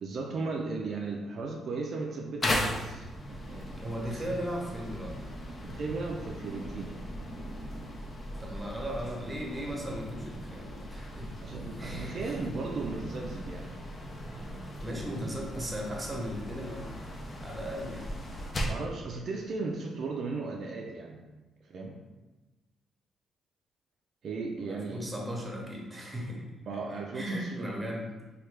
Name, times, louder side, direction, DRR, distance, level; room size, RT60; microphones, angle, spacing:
voice 1, 0.0-4.2 5.6-7.0 11.4-13.8 18.7-21.3 21.6-22.0 24.2-25.1 26.6-27.7, right 3 dB, 60° right, 0 dB, 0.4 m, -36 dB
sound 1, 2.4-18.9, equal, 35° left, 0.5 m, -38 dB
voice 2, 3.7-5.1 8.4-11.3 11.8-12.5 14.8-17.0 17.4-18.1 24.6-26.4 27.1-28.1, equal, 15° right, -1 dB, 0.8 m, -37 dB
3.2 x 2.4 x 3.2 m, 1.1 s
cardioid pair, 90°, 0 cm